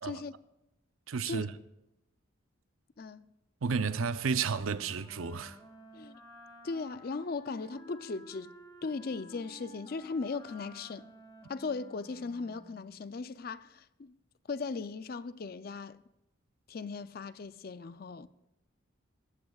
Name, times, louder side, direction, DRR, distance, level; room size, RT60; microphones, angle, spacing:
voice 1, 0.0-0.3 1.2-1.4 3.0-3.3 5.9-6.2 6.6-8.5 8.8-11.1 11.5-14.1 14.5-16.0 16.7-18.3, left 4 dB, 45° left, 0.4 m, -38 dB
voice 2, 1.1-1.5 3.6-5.6, right 5 dB, 90° right, 0.6 m, -32 dB
Wind instrument woodwind instrument, 4.5-13.0, equal, 20° left, 1.1 m, -53 dB
21.5 x 14.0 x 2.4 m
head